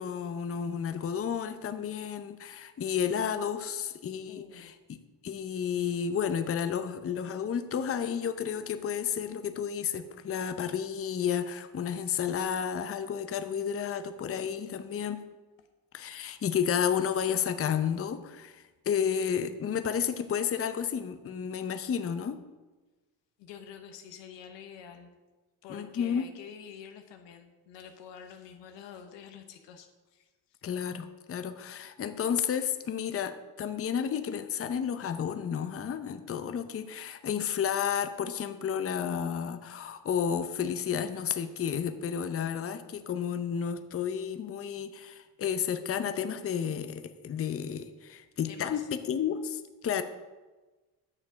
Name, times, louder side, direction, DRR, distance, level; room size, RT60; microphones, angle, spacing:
voice 1, 0.0-4.7 5.2-15.2 15.9-22.4 25.7-26.3 30.6-50.0, left 8 dB, 35° left, 9 dB, 0.6 m, -31 dB
voice 2, 4.3-4.7 16.0-16.2 23.4-25.1 25.6-30.6 48.5-48.9, left 7 dB, 90° left, 7 dB, 1.1 m, -48 dB
9.9 x 6.7 x 5.0 m, 1.2 s
cardioid pair, 90°, 42 cm